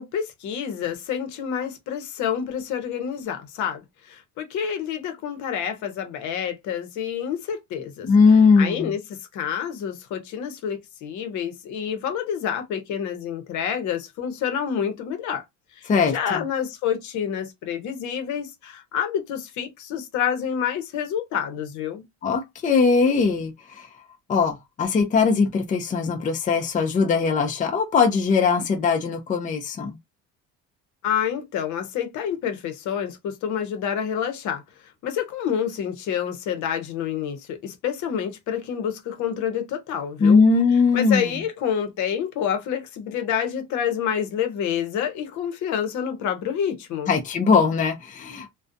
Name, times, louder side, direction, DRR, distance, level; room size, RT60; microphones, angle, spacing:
voice 1, 0.0-8.1 8.6-15.4 15.7-22.0 31.0-34.6 35.0-40.4 40.9-47.1, left 8 dB, 65° left, 0.8 m, -28 dB
voice 2, 8.0-8.9 15.9-16.4 22.2-24.0 24.3-30.0 40.2-41.4 47.1-48.5, left 5 dB, 25° left, 0.5 m, -20 dB
2.4 x 2.2 x 2.6 m
cardioid pair, 120°, 31 cm